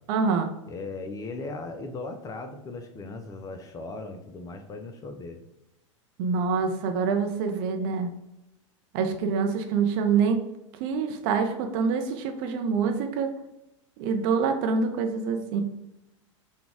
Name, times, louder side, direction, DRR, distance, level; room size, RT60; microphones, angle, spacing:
voice 1, 0.1-0.5 6.2-8.1 8.9-10.5 10.8-13.3 14.0-15.6, right 5 dB, 45° right, 5 dB, 0.6 m, -26 dB
voice 2, 0.7-5.4, left 3 dB, 20° left, 6 dB, 0.4 m, -38 dB
3.9 x 2.3 x 3.5 m, 0.89 s
figure-of-eight pair, 90°, 17 cm